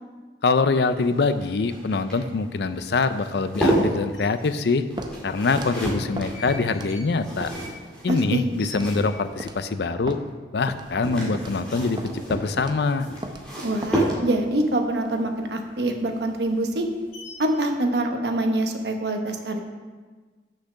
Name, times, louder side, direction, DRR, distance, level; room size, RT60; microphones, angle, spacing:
voice 1, 0.4-4.8 5.2-7.5 8.0-10.2 10.5-12.0 12.3-13.1, left 4 dB, 70° left, 11 dB, 0.5 m, -24 dB
sound 1, 0.7-9.6 10.7-14.6 16.2-16.5 16.8-16.9, right 1 dB, 5° left, 1.8 m, -31 dB
sound 2, 4.1-4.2 5.2-6.0 6.3-9.5 9.8-9.9 10.2-10.7 11.1-11.2 11.5-12.3 12.6-15.0 15.3-17.6, left 3 dB, 40° left, 2.6 m, -45 dB
Walk footsteps, 5.0-5.2 5.6-5.7 6.2-6.3 6.7-7.0 7.4-7.5 8.1-8.2 8.7-9.0 9.4-9.6 10.1-10.2 10.7-10.9 11.3-11.6 12.0-12.1 12.6-12.8 13.2-13.4 13.8-14.0, right 1 dB, 25° right, 0.5 m, -35 dB
voice 2, 8.1-8.5 13.6-16.8 17.4-19.6, right 1 dB, 75° right, 4 dB, 1.0 m, -25 dB
6.4 x 5.9 x 6.4 m, 1.4 s
head